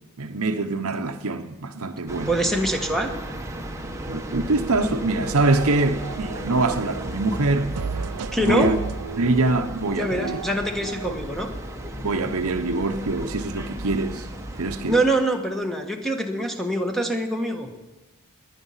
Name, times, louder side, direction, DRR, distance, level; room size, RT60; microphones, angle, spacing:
voice 1, 0.2-2.3 4.1-7.7 8.4-8.8 9.2-10.4 11.0-11.1 12.0-14.3 14.6-15.0, right 2 dB, 70° right, 0.9 m, -24 dB
sound 1, 2.1-15.0, right 1 dB, 15° right, 1.1 m, -35 dB
voice 2, 2.3-3.1 8.3-8.7 10.0-11.5 14.9-17.7, right 1 dB, ahead, 1.4 m, -24 dB
sound 2, 5.1-7.2 7.8-11.1, right 6 dB, 90° right, 0.5 m, -35 dB
19.0 x 11.0 x 5.7 m
head